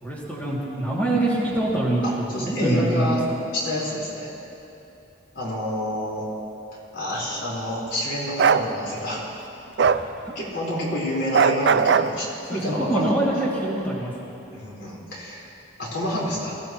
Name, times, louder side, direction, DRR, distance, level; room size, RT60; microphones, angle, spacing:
voice 1, 0.0-3.2 9.8-10.3 12.5-14.1, right 1 dB, 10° left, -6 dB, 2.5 m, -25 dB
voice 2, 2.0-3.2 3.5-4.3 5.3-6.2 6.9-9.2 10.3-13.2 14.4-15.4 15.8-16.5, left 1 dB, 85° left, -5 dB, 4.4 m, -28 dB
Bark, 8.4-8.6 9.8-10.0 11.3-12.1, right 6 dB, 65° right, 0.4 m, -18 dB
23.5 x 16.0 x 3.1 m, 2.9 s
head